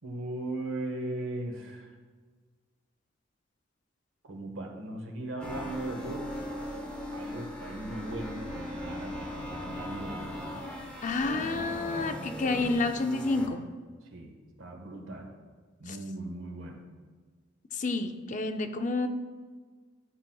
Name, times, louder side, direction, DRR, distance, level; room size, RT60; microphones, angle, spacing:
voice 1, 0.0-1.9 4.2-6.3 7.1-10.4 14.1-14.3 14.6-15.3 15.8-16.8, right 2 dB, 90° right, 2 dB, 1.3 m, -38 dB
sound 1, 5.4-13.5, left 1 dB, 5° left, 0.9 m, -39 dB
voice 2, 11.0-13.6 15.9-16.0 17.7-19.1, left 3 dB, 40° left, 7 dB, 0.5 m, -29 dB
12.5 x 5.9 x 2.3 m, 1.5 s
head